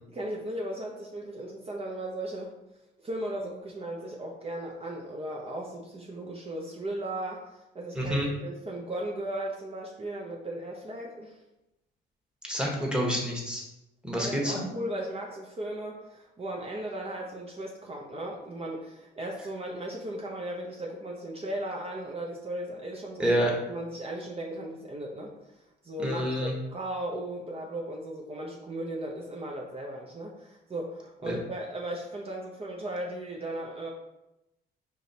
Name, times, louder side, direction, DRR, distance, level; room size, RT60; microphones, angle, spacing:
voice 1, 0.1-2.5 3.0-11.4 14.2-33.9, right 1 dB, 30° right, -1 dB, 0.6 m, -36 dB
voice 2, 7.9-8.3 12.5-13.6 14.0-14.6 23.2-23.5 26.0-26.5 31.2-31.4, equal, 5° right, -2 dB, 1.2 m, -28 dB
4.9 x 2.9 x 2.7 m, 0.91 s
cardioid pair, 90°, 20 cm